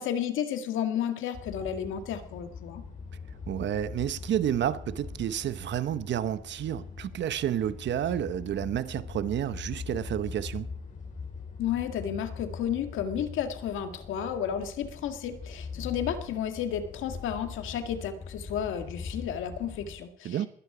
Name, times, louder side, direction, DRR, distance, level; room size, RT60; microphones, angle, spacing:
voice 1, 0.0-2.8 11.6-20.4, left 9 dB, 85° left, 1.9 m, -32 dB
sound 1, 1.3-20.0, left 4 dB, 40° left, 5.3 m, -42 dB
voice 2, 3.5-10.7 20.2-20.5, right 10 dB, 65° right, 0.9 m, -30 dB
20.5 x 11.5 x 5.0 m
cardioid pair, 90°, 20 cm